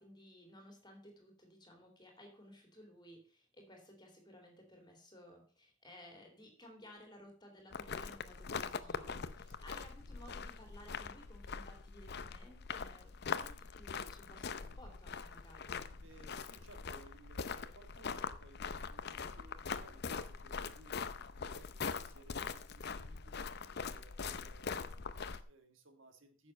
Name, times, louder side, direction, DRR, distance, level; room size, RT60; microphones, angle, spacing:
voice 1, 0.0-15.7, equal, 20° left, 3 dB, 2.7 m, -57 dB
sound 1, 7.7-25.4, left 5 dB, 50° left, 0.6 m, -42 dB
voice 2, 9.4-9.8 16.0-21.0 21.4-23.5 23.8-26.5, right 2 dB, 60° right, 7 dB, 1.7 m, -60 dB
9.6 x 6.9 x 5.3 m, 0.41 s
head